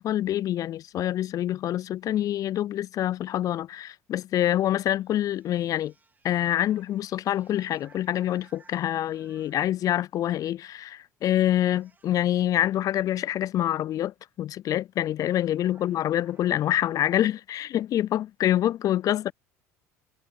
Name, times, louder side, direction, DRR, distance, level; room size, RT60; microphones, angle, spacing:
voice 1, 0.0-5.9 6.2-19.3, left 12 dB, 45° left, 0.4 m, -26 dB
sound 1, 4.9-10.1 11.0-11.3 11.6-13.4 14.8-14.9 15.2-17.0, right 4 dB, 20° right, 4.3 m, -61 dB
hypercardioid pair, 80°, 8 cm